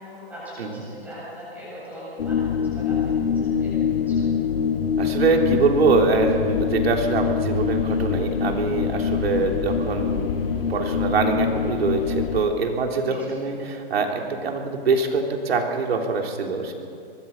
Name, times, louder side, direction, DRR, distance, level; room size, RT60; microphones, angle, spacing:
voice 1, 0.0-2.9 3.4-4.3 12.9-13.3, equal, 5° right, -8 dB, 7.6 m, -40 dB
sound 1, 2.2-12.4, left 7 dB, 65° left, 1.6 m, -24 dB
voice 2, 5.0-16.7, right 4 dB, 75° right, 2 dB, 3.6 m, -24 dB
23.0 x 21.5 x 5.6 m, 2.4 s
hypercardioid pair, 180°, 31 cm